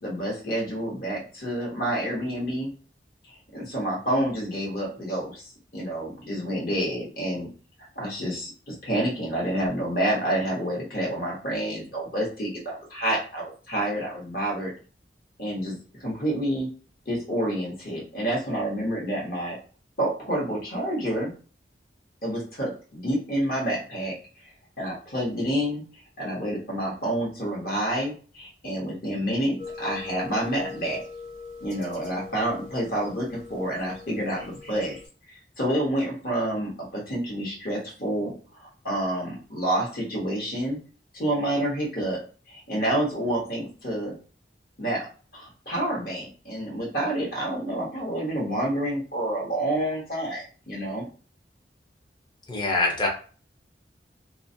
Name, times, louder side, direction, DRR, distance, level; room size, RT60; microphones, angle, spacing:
voice 1, 0.0-2.7 3.5-7.5 7.9-14.7 15.4-16.7 17.1-19.6 20.0-21.3 22.2-24.1 24.8-25.8 26.2-31.0 31.6-35.0 35.3-40.8 41.1-42.2 42.5-44.1 44.8-45.1 45.3-51.0, right 1 dB, 55° left, -3 dB, 1.1 m, -28 dB
sound 1, 29.6-35.1, left 4 dB, 80° left, 1.0 m, -41 dB
voice 2, 52.5-53.1, left 2 dB, 25° left, -1 dB, 0.6 m, -24 dB
2.4 x 2.1 x 2.6 m, 0.38 s
head